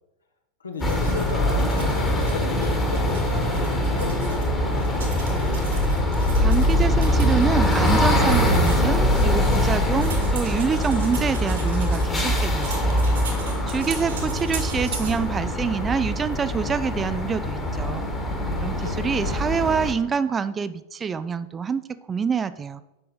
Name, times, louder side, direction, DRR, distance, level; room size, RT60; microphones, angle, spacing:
voice 1, 0.6-5.0 18.6-19.4, left 3 dB, 75° left, 4 dB, 1.0 m, -35 dB
sound 1, 0.8-19.9, left 1 dB, 15° left, 1.3 m, -23 dB
sound 2, 0.8-4.5 4.7-12.3 12.6-15.1, right 5 dB, 65° right, 1.7 m, -39 dB
voice 2, 6.4-13.1 13.4-18.0 18.6-22.8, right 6 dB, 20° right, 14 dB, 0.3 m, -26 dB
7.9 x 5.7 x 3.8 m, 0.96 s
figure-of-eight pair, 90°, 0 cm